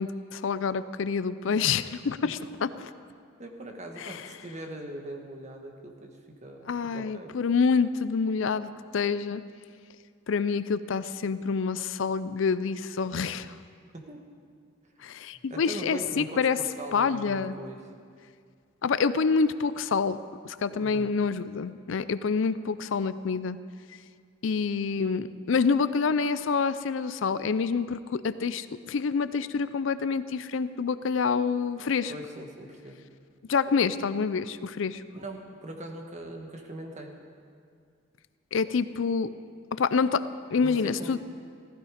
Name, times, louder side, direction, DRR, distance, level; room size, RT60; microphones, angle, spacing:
voice 1, 0.0-2.4 4.0-4.3 6.7-9.4 10.3-13.5 15.0-16.6 16.9-17.5 18.8-20.2 20.4-23.6 24.4-32.1 33.5-35.0 38.5-39.3 39.7-40.3 40.5-41.2, left 5 dB, 70° left, 14 dB, 0.5 m, -27 dB
voice 2, 3.4-6.1 6.4-7.3 13.9-14.2 15.5-17.8 20.7-21.1 32.1-33.0 35.1-37.1 40.6-41.2, right 1 dB, 35° right, 2 dB, 1.6 m, -41 dB
16.0 x 15.0 x 5.1 m, 2.1 s
head